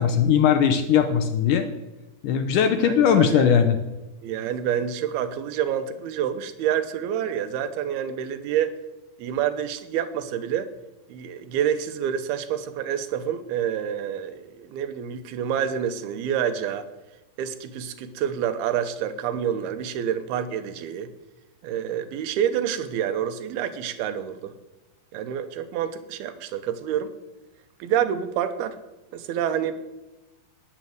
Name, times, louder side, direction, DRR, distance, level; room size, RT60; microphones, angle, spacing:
voice 1, 0.0-1.7 2.2-3.8, left 8 dB, 75° left, 8 dB, 2.1 m, -19 dB
voice 2, 2.8-3.4 4.2-8.7 9.2-10.7 11.1-16.9 17.4-21.1 21.6-24.5 25.1-27.1 27.8-28.8 29.1-29.8, right 9 dB, 85° right, 10 dB, 2.8 m, -28 dB
11.0 x 10.0 x 7.9 m, 1.0 s
omnidirectional pair, 4.4 m